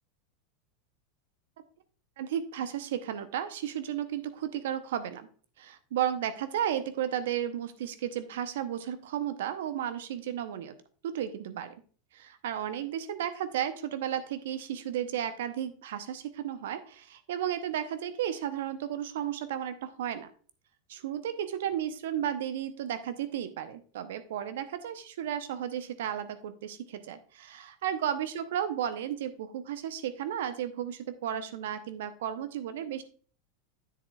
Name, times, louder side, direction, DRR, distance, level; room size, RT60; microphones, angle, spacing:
voice 1, 2.2-5.3 5.6-10.7 11.0-11.7 12.1-20.3 20.9-33.0, right 10 dB, 70° right, 11 dB, 0.7 m, -33 dB
9.8 x 7.8 x 2.3 m, 0.43 s
hypercardioid pair, 90°, 0 cm